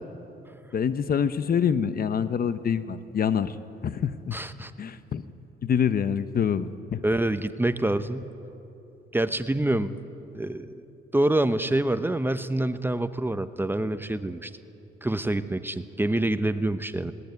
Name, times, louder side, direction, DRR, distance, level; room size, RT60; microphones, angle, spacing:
voice 1, 0.7-3.5 3.8-4.4 4.8-5.2 5.6-7.0, left 7 dB, 50° left, 13 dB, 0.8 m, -26 dB
voice 2, 4.3-4.7 7.0-8.3 9.1-9.9 10.3-10.8 11.1-14.5 15.0-17.1, right 1 dB, 10° right, 12 dB, 0.8 m, -26 dB
20.0 x 18.0 x 9.6 m, 2.9 s
cardioid pair, 90°, 20 cm